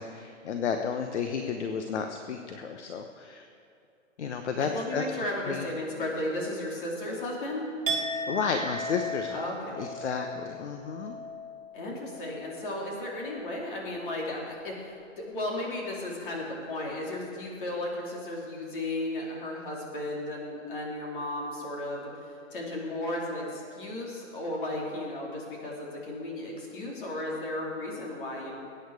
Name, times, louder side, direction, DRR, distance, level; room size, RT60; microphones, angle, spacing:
voice 1, 0.0-3.5 4.2-5.0 5.5-5.7 8.3-9.4 9.8-11.2, left 6 dB, 65° left, 6 dB, 1.0 m, -32 dB
voice 2, 4.6-7.6 9.3-9.9 11.7-28.6, left 1 dB, 40° left, -3 dB, 3.3 m, -35 dB
Chink clink, 7.9-13.8 14.1-14.5, right 1 dB, 45° right, 2.6 m, -37 dB
21.0 x 9.1 x 4.8 m, 2.5 s
hypercardioid pair, 175°, 38 cm